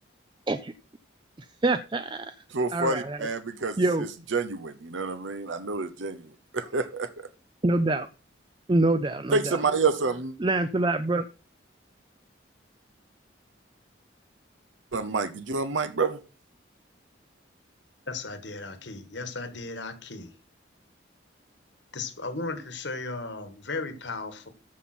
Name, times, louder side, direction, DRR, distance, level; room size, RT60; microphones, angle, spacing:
voice 1, 1.6-2.3 2.7-3.3 3.8-4.1 7.6-8.1 8.7-9.6 10.4-11.3, right 2 dB, 25° right, 0.4 m, -25 dB
voice 2, 2.5-3.8 4.3-6.2 6.5-7.1 9.3-10.3 14.9-16.2, right 3 dB, 85° right, 0.9 m, -28 dB
voice 3, 18.1-20.3 21.9-24.5, left 3 dB, 70° left, 1.7 m, -36 dB
14.0 x 5.5 x 4.4 m
head